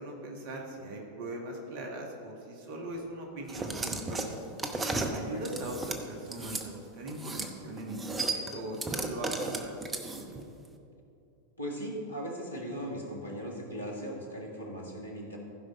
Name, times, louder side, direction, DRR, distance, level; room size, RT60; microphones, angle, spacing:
voice 1, 0.0-4.3 5.1-9.7 10.2-10.4, right 1 dB, 45° right, 1 dB, 1.4 m, -40 dB
sound 1, 3.5-6.6 7.1-7.5 7.8-10.4, right 3 dB, 15° right, 0.8 m, -34 dB
voice 2, 11.6-15.4, equal, 80° left, -1 dB, 1.7 m, -38 dB
15.5 x 5.3 x 4.1 m, 2.7 s
figure-of-eight pair, 90°, 0 cm